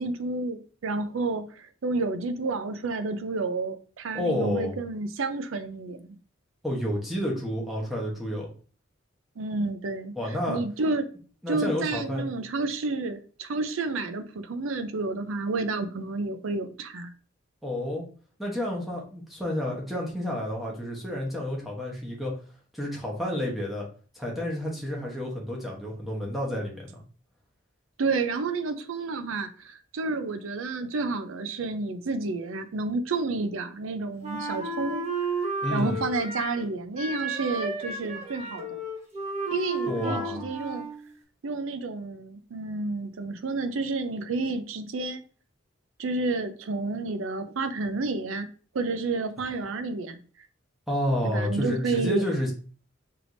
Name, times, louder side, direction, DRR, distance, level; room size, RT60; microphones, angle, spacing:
voice 1, 0.0-6.2 9.4-10.1 10.5-11.1 11.5-17.1 28.0-35.0 35.7-38.8 39.5-40.9 41.4-45.2 46.0-48.5 48.7-50.2 51.2-52.2, right 3 dB, 80° right, 0.5 m, -30 dB
voice 2, 4.1-4.8 6.6-8.5 10.2-10.6 11.4-12.3 17.6-18.0 18.4-22.3 22.7-23.9 24.1-27.0 35.6-36.0 39.9-40.5 49.4-49.5 50.9-52.5, left 1 dB, ahead, 0.9 m, -30 dB
Wind instrument woodwind instrument, 34.2-36.7 37.0-41.0, right 2 dB, 35° right, 1.0 m, -32 dB
4.6 x 3.4 x 2.6 m
head